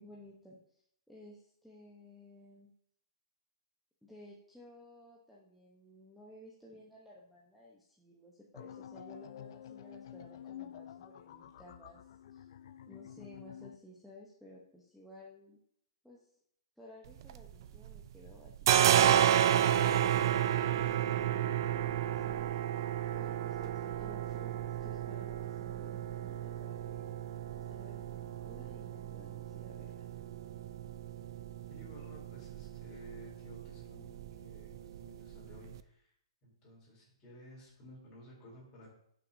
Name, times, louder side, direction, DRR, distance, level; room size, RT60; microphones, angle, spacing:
voice 1, 0.0-2.7 4.0-12.0 12.3-12.5 12.9-15.6 16.0-16.3 16.8-19.2 20.8-22.8 23.1-27.1 27.6-29.9, left 1 dB, ahead, -6 dB, 0.9 m, -56 dB
sound 1, 8.5-13.8, left 10 dB, 50° left, 0.4 m, -49 dB
sound 2, 17.1-18.0 18.3-35.8, right 10 dB, 45° right, 0.4 m, -32 dB
voice 2, 31.7-36.1 36.4-38.9, equal, 25° left, -4 dB, 3.4 m, -54 dB
11.0 x 6.0 x 2.7 m, 0.69 s
hypercardioid pair, 155°, 3 cm